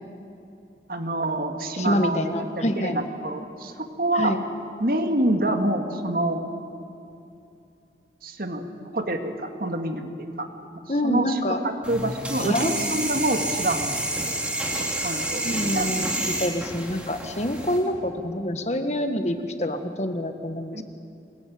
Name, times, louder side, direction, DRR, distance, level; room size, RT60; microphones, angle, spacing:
voice 1, 0.9-2.3 2.6-4.4 4.8-6.4 8.2-8.6 8.9-10.1 10.4-10.5 11.0-14.0 14.8-16.0 20.7-20.8, right 1 dB, 50° right, 5 dB, 2.1 m, -27 dB
voice 2, 1.7-3.0 4.2-4.4 10.9-11.6 12.4-12.7 15.4-20.8, left 1 dB, 40° left, 7 dB, 1.5 m, -26 dB
sound 1, 11.8-17.8, right 1 dB, 5° right, 3.1 m, -29 dB
24.0 x 21.0 x 9.5 m, 2.7 s
head